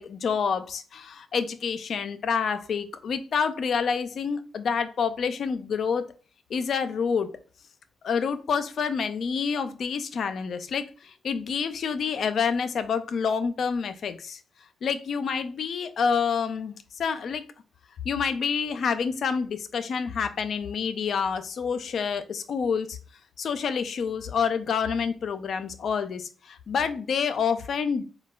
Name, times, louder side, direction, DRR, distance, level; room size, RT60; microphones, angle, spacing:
voice 1, 0.0-6.1 6.5-7.4 8.0-14.4 14.8-17.4 18.0-23.0 23.4-28.0, left 6 dB, 70° left, 0.3 m, -28 dB
4.0 x 2.2 x 2.2 m
supercardioid pair, 60°, 0 cm